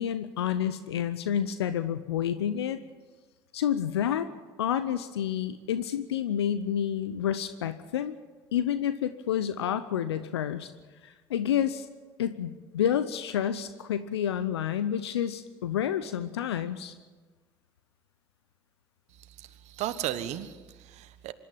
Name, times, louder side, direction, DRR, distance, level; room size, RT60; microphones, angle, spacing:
voice 1, 0.0-2.8 3.5-4.3 4.6-8.2 8.5-10.7 11.0-11.9 12.2-16.9, left 9 dB, 85° left, 12 dB, 0.8 m, -29 dB
voice 2, 19.3-21.3, right 12 dB, 60° right, 11 dB, 1.3 m, -35 dB
25.0 x 12.0 x 9.0 m, 1.3 s
hypercardioid pair, 60°, 13 cm